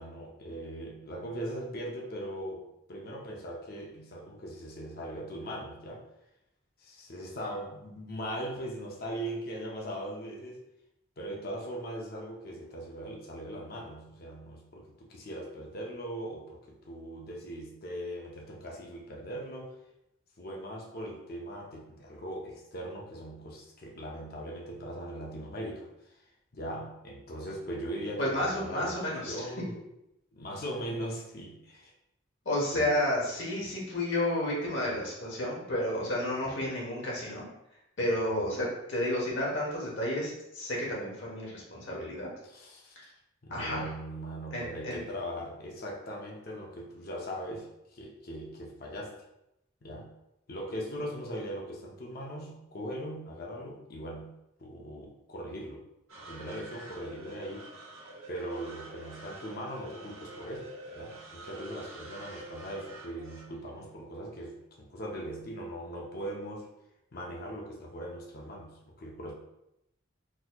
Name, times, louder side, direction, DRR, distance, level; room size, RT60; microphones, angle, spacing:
voice 1, 0.0-2.6 2.9-6.1 6.8-10.6 11.2-19.8 20.4-26.2 26.5-29.7 30.3-31.9 32.7-32.9 36.4-36.6 42.4-43.1 43.4-49.2 49.8-50.1 50.5-54.3 54.6-55.8 56.2-57.7 58.3-66.7 67.1-69.3, equal, 45° left, -1 dB, 0.6 m, -40 dB
voice 2, 28.2-29.3 32.4-37.5 38.0-42.3 43.5-43.9 44.5-45.0, left 1 dB, 65° left, -4 dB, 1.1 m, -31 dB
sound 1, 56.1-64.5, right 2 dB, 85° right, 1.0 m, -47 dB
4.0 x 2.8 x 2.3 m, 0.85 s
head